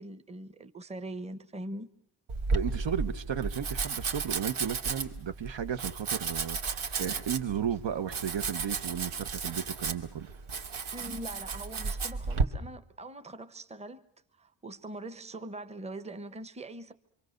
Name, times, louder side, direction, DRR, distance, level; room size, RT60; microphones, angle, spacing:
voice 1, 0.0-1.9 10.9-14.0 14.4-16.9, right 1 dB, 15° right, 1.0 m, -42 dB
Domestic sounds home sounds, 2.3-12.4, right 4 dB, 80° right, 2.3 m, -33 dB
voice 2, 2.5-10.3, right 8 dB, 65° right, 1.2 m, -34 dB
26.5 x 25.5 x 6.6 m
wide cardioid pair, 170°, 48 cm